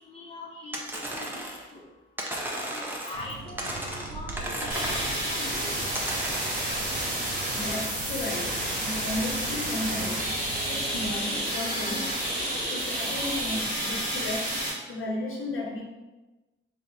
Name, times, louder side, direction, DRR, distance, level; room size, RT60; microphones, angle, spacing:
voice 1, 0.0-1.4 1.7-1.8 2.7-5.8 13.1-13.2, left 2 dB, 25° left, -3 dB, 0.7 m, -42 dB
sound 1, 0.7-1.7 2.2-3.3 3.6-5.3 5.9-6.9, right 1 dB, 10° right, 0.4 m, -34 dB
sound 2, 3.1-11.2, right 3 dB, 85° right, 0.4 m, -41 dB
sound 3, 4.7-14.7, right 1 dB, 40° right, 1.2 m, -30 dB
voice 2, 7.5-10.3 10.7-12.2 12.7-14.5 14.9-15.8, left 2 dB, 75° left, -1 dB, 0.8 m, -34 dB
4.0 x 2.1 x 3.8 m, 1.1 s
wide cardioid pair, 170°, 21 cm